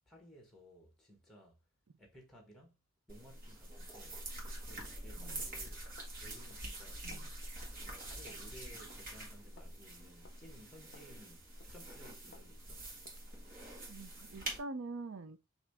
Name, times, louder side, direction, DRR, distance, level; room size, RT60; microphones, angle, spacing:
voice 1, 0.1-1.6 2.0-2.8 3.1-4.2 4.6-5.8 6.2-7.3 7.8-12.9, equal, ahead, 1.3 m, -58 dB
sound 1, 3.1-14.6, right 1 dB, 45° right, 1.5 m, -46 dB
sound 2, 4.8-5.0 5.4-5.6 6.0-6.2 6.5-6.6 7.1-7.3 7.6-7.8 8.3-8.5 8.9-9.1 9.6-9.7 10.3-10.4 10.9-11.1 11.6-11.9 12.3-12.5 13.1-13.3, left 4 dB, 50° left, 0.5 m, -60 dB
voice 2, 13.9-15.4, right 3 dB, 65° right, 0.5 m, -45 dB
4.7 x 2.8 x 3.5 m
head